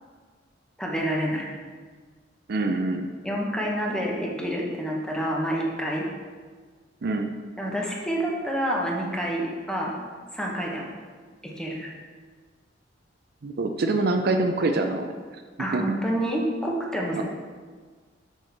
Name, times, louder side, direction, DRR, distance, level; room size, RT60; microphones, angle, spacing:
voice 1, 0.8-1.5 3.2-6.1 7.6-10.0 10.3-10.9 11.4-11.9 15.6-17.2, equal, 5° left, -2 dB, 1.0 m, -28 dB
voice 2, 2.5-3.1 7.0-7.3 13.4-15.1 15.7-16.0 17.2-17.3, right 2 dB, 55° right, 5 dB, 0.5 m, -25 dB
6.3 x 6.2 x 4.2 m, 1.5 s
head